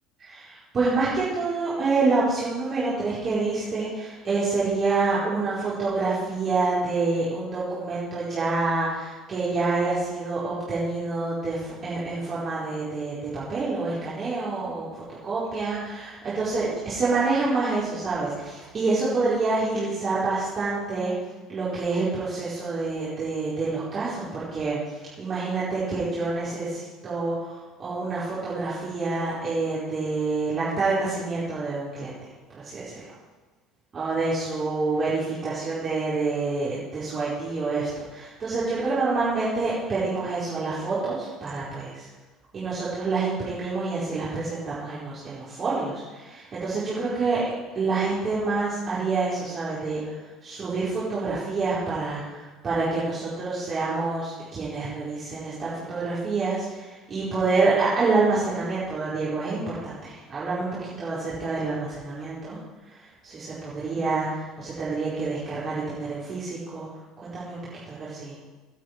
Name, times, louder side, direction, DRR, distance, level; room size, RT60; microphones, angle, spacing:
voice 1, 0.2-21.1 21.5-32.1 32.5-33.0 33.9-42.1 42.5-47.4 47.7-50.2 50.4-62.6 63.0-66.9 67.2-67.6 67.9-68.3, right 3 dB, 35° right, -10 dB, 4.8 m, -27 dB
17.5 x 9.1 x 4.9 m, 1.3 s
figure-of-eight pair, 65°, 0 cm